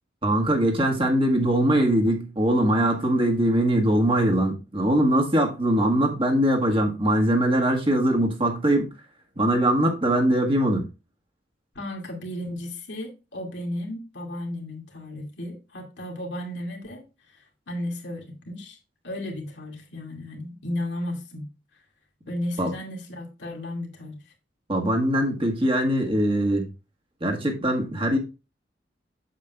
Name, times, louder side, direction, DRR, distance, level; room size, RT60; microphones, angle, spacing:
voice 1, 0.2-8.9 9.3-10.8 22.6-22.7 24.7-26.7 27.2-28.2, right 1 dB, 30° right, 1.6 m, -22 dB
voice 2, 11.7-17.0 17.3-18.8 19.0-21.5 22.3-24.2, left 1 dB, 80° left, 2.3 m, -34 dB
8.3 x 7.4 x 2.4 m
head